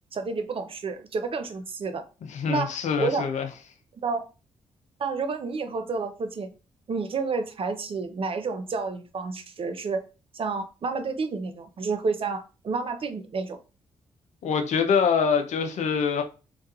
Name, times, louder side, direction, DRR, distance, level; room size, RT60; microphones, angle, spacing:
voice 1, 0.1-2.0 2.5-3.3 4.0-4.3 5.0-6.5 6.9-10.0 10.3-13.6, right 4 dB, 45° right, 0.5 m, -30 dB
voice 2, 2.3-3.5 14.4-16.2, left 6 dB, 65° left, 0.5 m, -24 dB
2.3 x 2.2 x 2.7 m
hypercardioid pair, 45°, 13 cm